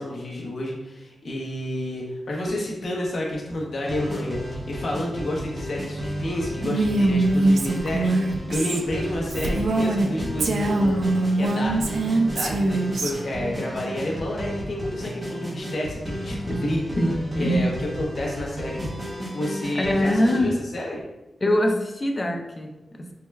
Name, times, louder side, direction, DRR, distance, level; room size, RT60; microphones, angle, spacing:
voice 1, 0.0-12.0 12.3-16.8 17.4-17.7 18.0-18.9 19.3-21.0, left 1 dB, 60° left, -3 dB, 0.8 m, -30 dB
sound 1, 3.8-20.4, equal, 30° right, 0.7 m, -33 dB
Female speech woman speaking, 6.6-10.1 10.4-13.1, right 2 dB, 75° right, 0.3 m, -23 dB
voice 2, 17.0-17.7 19.7-20.6 21.4-23.1, equal, 25° left, 3 dB, 0.3 m, -23 dB
4.5 x 2.1 x 2.2 m, 1.0 s
wide cardioid pair, 150°, 0 cm